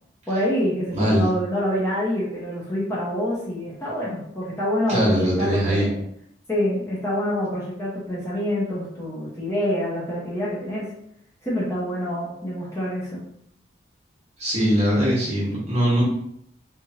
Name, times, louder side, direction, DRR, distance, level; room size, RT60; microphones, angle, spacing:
voice 1, 0.3-6.0 6.5-10.9 11.4-13.2, equal, 15° left, -7 dB, 0.7 m, -26 dB
voice 2, 0.9-1.3 4.9-5.9 14.4-16.0, equal, 35° right, -6 dB, 1.1 m, -21 dB
3.0 x 2.5 x 2.8 m, 0.72 s
head